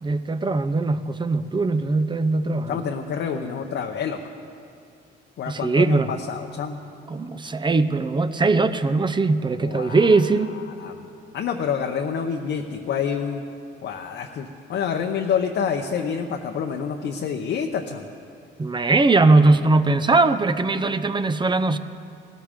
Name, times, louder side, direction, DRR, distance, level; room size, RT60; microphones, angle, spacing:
voice 1, 0.0-2.8 5.5-6.1 7.1-10.5 18.6-21.8, right 3 dB, 25° right, 12 dB, 0.6 m, -20 dB
voice 2, 2.7-4.2 5.4-6.8 9.6-10.2 10.8-11.1 11.3-13.4 13.8-18.0, left 7 dB, 65° left, 2 dB, 0.8 m, -27 dB
18.0 x 13.5 x 3.7 m, 2.5 s
cardioid pair, 90°, 20 cm